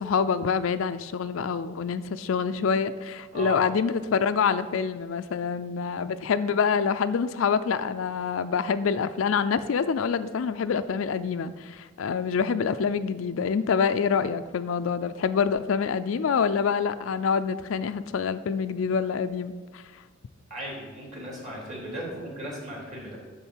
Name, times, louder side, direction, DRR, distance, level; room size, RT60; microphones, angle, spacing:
voice 1, 0.0-19.8, left 6 dB, 75° left, 12 dB, 0.4 m, -26 dB
voice 2, 20.5-23.2, equal, 40° right, -3 dB, 3.1 m, -36 dB
10.0 x 3.7 x 7.2 m, 1.4 s
head